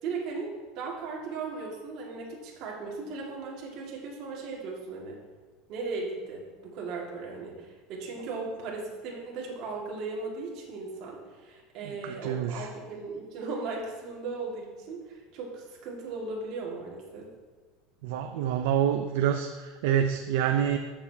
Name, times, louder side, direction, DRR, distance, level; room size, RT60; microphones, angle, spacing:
voice 1, 0.0-5.2 5.7-17.3, right 4 dB, 40° right, -3 dB, 1.9 m, -37 dB
voice 2, 11.8-12.7 18.0-20.8, right 9 dB, 70° right, 5 dB, 0.5 m, -27 dB
14.5 x 6.9 x 2.8 m, 1.3 s
cardioid pair, 180°, 0 cm